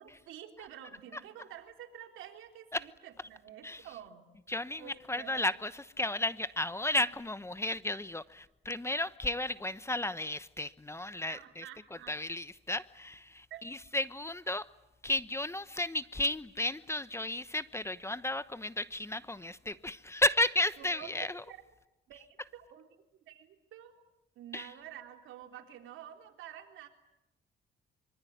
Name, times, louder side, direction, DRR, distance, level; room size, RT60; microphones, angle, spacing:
voice 1, 0.0-4.3 4.8-5.5 11.3-12.2 13.5-13.6 20.8-21.1 21.5-21.6 22.1-22.3 22.5-22.9 23.3-23.9 24.4-26.9, right 10 dB, 85° right, 4 dB, 3.6 m, -49 dB
voice 2, 4.5-11.6 12.1-14.7 15.0-21.4 24.5-24.7, left 1 dB, 15° left, 14 dB, 1.0 m, -33 dB
25.0 x 24.5 x 9.5 m, 0.92 s
cardioid pair, 90°, 20 cm